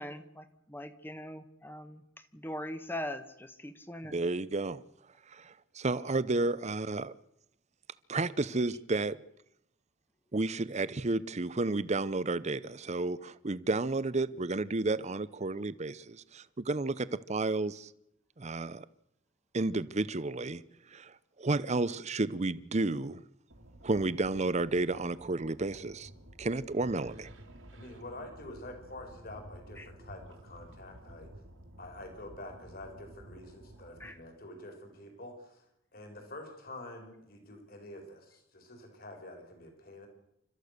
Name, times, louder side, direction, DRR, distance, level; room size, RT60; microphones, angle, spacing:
voice 1, 0.0-2.0 2.3-4.2 29.8-29.9 34.0-34.2, left 1 dB, 10° left, 1.2 m, -41 dB
voice 2, 4.0-4.8 5.3-7.1 8.1-9.2 10.3-17.9 18.4-18.8 19.5-20.6 20.9-23.2 23.8-26.1 26.4-27.3, right 2 dB, 35° right, 0.7 m, -32 dB
sound 1, 23.5-34.1, right 1 dB, 90° right, 3.4 m, -52 dB
voice 3, 27.7-31.3 31.8-35.6 35.9-40.1, left 1 dB, 50° left, 4.5 m, -47 dB
29.5 x 13.5 x 6.6 m
head